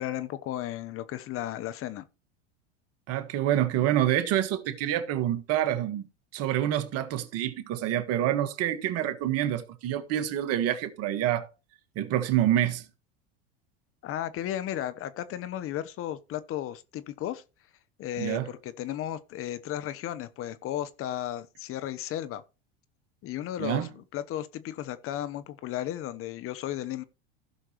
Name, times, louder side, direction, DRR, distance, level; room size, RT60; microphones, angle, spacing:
voice 1, 0.0-2.0 14.0-17.4 18.0-22.4 23.2-27.0, left 12 dB, 45° left, 1.0 m, -34 dB
voice 2, 3.1-6.1 6.3-11.5 11.9-12.8 18.2-18.5 23.6-23.9, right 12 dB, 50° right, 1.5 m, -27 dB
15.5 x 6.3 x 3.1 m
hypercardioid pair, 95°, 32 cm